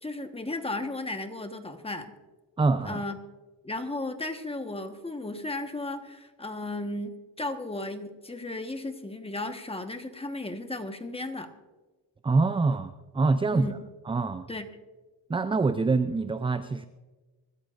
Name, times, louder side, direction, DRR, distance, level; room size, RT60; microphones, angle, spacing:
voice 1, 0.0-2.1 2.8-3.2 3.6-11.5 13.5-13.7 14.5-14.7, left 2 dB, 15° left, 6 dB, 1.3 m, -35 dB
voice 2, 2.6-3.0 12.2-13.8 14.1-14.5 15.3-16.9, right 3 dB, 15° right, 11 dB, 0.4 m, -25 dB
24.5 x 14.0 x 2.5 m, 1.3 s
cardioid pair, 95°, 44 cm